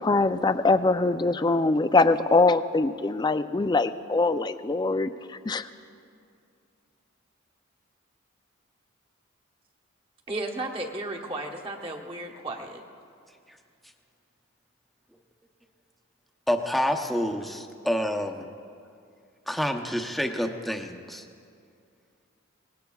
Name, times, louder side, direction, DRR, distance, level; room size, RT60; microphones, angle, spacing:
voice 1, 0.0-5.7, left 3 dB, 20° left, 11 dB, 0.3 m, -23 dB
voice 2, 10.3-12.8, right 2 dB, 25° right, 1 dB, 1.1 m, -34 dB
voice 3, 16.5-18.5 19.5-21.2, equal, ahead, 3 dB, 0.7 m, -28 dB
24.0 x 19.5 x 2.4 m, 2.4 s
head